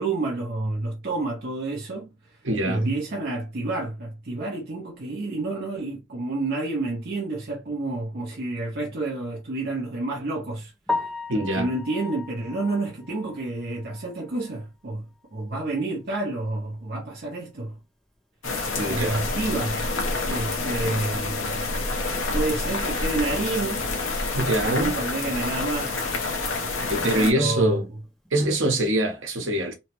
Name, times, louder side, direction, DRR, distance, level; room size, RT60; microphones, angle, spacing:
voice 1, 0.0-2.4 2.7-10.7 11.5-15.1 15.3-17.7 18.9-19.8 20.3-21.7 22.3-23.8 24.6-26.1 27.1-27.8, right 2 dB, 50° right, 0.6 m, -29 dB
voice 2, 2.4-2.9 11.3-11.7 18.7-19.2 24.3-24.9 26.9-27.9 28.3-29.7, right 1 dB, 70° right, 1.0 m, -24 dB
Piano, 10.9-14.8 15.2-15.3 15.8-15.9 16.3-16.4 19.5-19.6 28.0-28.3, left 3 dB, ahead, 0.3 m, -35 dB
sound 1, 18.4-27.3, left 3 dB, 80° left, 0.9 m, -28 dB
3.1 x 2.0 x 2.9 m
head